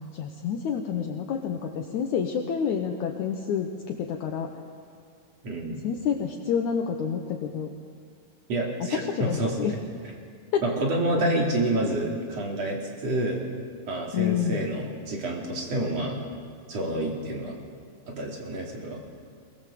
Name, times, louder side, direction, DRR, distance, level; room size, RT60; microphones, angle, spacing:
voice 1, 0.0-4.5 5.8-7.7 8.9-9.7 10.5-10.6 14.1-14.7, left 7 dB, 65° left, 3 dB, 2.3 m, -28 dB
voice 2, 5.4-5.8 8.5-9.8 10.6-13.4 13.9-16.2 16.7-17.6 18.1-19.0, right 1 dB, 50° right, -1 dB, 4.1 m, -28 dB
22.0 x 21.0 x 7.6 m, 2.1 s
omnidirectional pair, 4.0 m